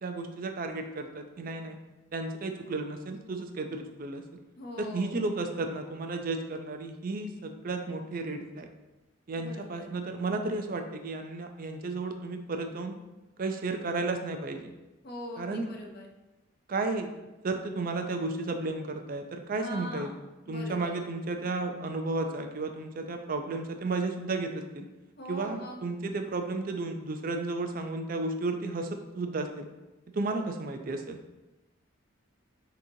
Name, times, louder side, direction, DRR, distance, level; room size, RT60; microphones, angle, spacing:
voice 1, 0.0-1.8 2.1-4.2 4.8-8.7 9.3-13.0 13.4-14.7 15.4-15.7 16.7-17.1 17.4-20.1 20.5-24.9 25.3-29.7 30.1-31.2, right 3 dB, 45° right, 6 dB, 0.4 m, -33 dB
voice 2, 4.6-5.2 9.4-10.0 15.0-16.1 19.6-20.2 20.5-21.0 25.2-25.8, left 1 dB, 50° left, 1 dB, 0.6 m, -42 dB
6.2 x 2.9 x 2.7 m, 1.1 s
head